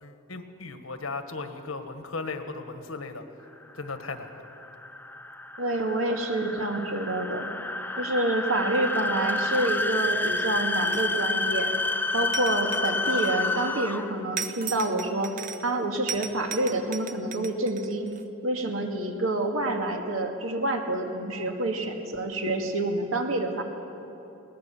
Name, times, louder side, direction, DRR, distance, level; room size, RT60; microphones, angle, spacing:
voice 1, 0.0-3.2 3.7-4.5, left 3 dB, 80° left, 8 dB, 1.4 m, -36 dB
sound 1, 3.6-14.3, left 2 dB, 10° left, 0.5 m, -29 dB
voice 2, 5.6-7.5 8.0-11.7 12.1-15.3 15.6-18.1 18.4-23.6, right 2 dB, 75° right, 3 dB, 2.0 m, -28 dB
sound 2, 10.8-11.4 12.3-13.6 14.4-15.8 16.1-18.2, right 6 dB, 40° right, 0.7 m, -37 dB
21.0 x 18.0 x 7.1 m, 2.9 s
head